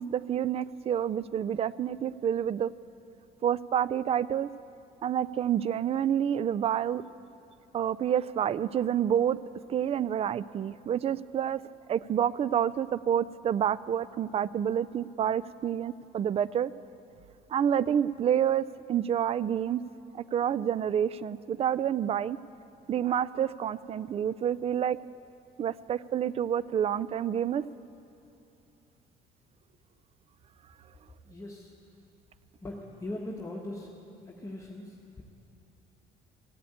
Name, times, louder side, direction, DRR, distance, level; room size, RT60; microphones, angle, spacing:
voice 1, 0.0-2.7 3.4-4.5 5.0-7.0 7.7-9.4 9.7-11.6 11.9-16.7 17.5-19.8 20.1-22.4 22.9-25.0 25.6-27.6, right 9 dB, 35° right, 19 dB, 0.3 m, -28 dB
voice 2, 31.2-31.7 32.6-33.9 34.2-35.2, left 1 dB, 20° left, -2 dB, 1.3 m, -40 dB
15.5 x 8.5 x 8.6 m, 2.8 s
cardioid pair, 110°, 17 cm